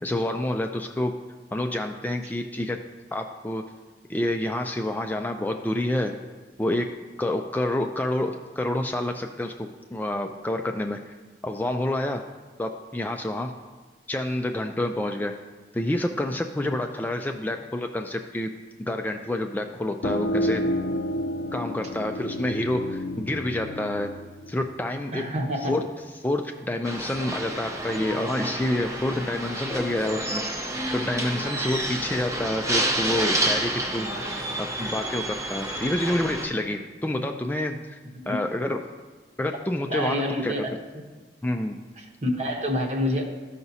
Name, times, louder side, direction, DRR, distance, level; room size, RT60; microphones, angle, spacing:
voice 1, 0.0-1.2 1.5-2.8 3.1-3.7 4.1-6.1 6.6-11.1 11.4-12.2 12.6-13.5 14.1-15.4 15.7-18.5 18.8-20.6 21.5-24.1 24.5-25.3 25.6-25.8 26.2-30.4 30.9-34.1 34.4-38.0 38.3-38.8 39.4-40.5 41.4-41.8, left 1 dB, 10° left, 4 dB, 0.3 m, -28 dB
sound 1, 20.0-25.4, equal, 65° left, 0.6 m, -30 dB
voice 2, 25.1-25.8 38.1-38.4 39.9-41.0 42.0-43.2, left 1 dB, 40° right, 1 dB, 1.0 m, -28 dB
sound 2, 26.8-36.5, right 1 dB, 20° right, 0.7 m, -29 dB
13.5 x 5.8 x 2.7 m, 1.3 s
head